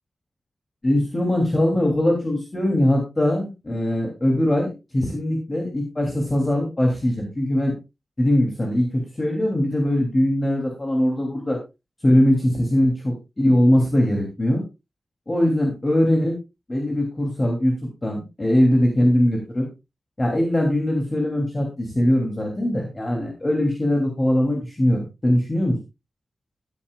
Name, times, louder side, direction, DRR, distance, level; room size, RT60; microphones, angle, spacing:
voice 1, 0.8-7.7 8.2-11.6 12.0-14.6 15.3-16.3 16.7-19.7 20.2-25.8, left 1 dB, 25° left, 0 dB, 2.8 m, -21 dB
14.5 x 10.5 x 2.4 m, 0.26 s
wide cardioid pair, 150°, 0 cm